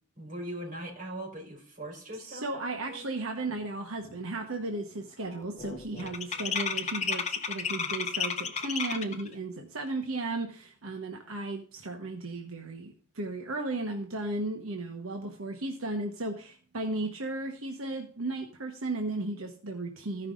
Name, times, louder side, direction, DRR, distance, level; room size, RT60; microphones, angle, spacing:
voice 1, 0.2-2.6 2.9-3.0, right 1 dB, 40° right, -2 dB, 4.9 m, -40 dB
voice 2, 2.2-20.3, right 2 dB, 85° right, 3 dB, 1.2 m, -35 dB
sound 1, 3.6-3.7 4.0-4.4 4.6-9.3, left 6 dB, 30° left, 0.8 m, -33 dB
15.0 x 5.7 x 3.9 m, 0.43 s
head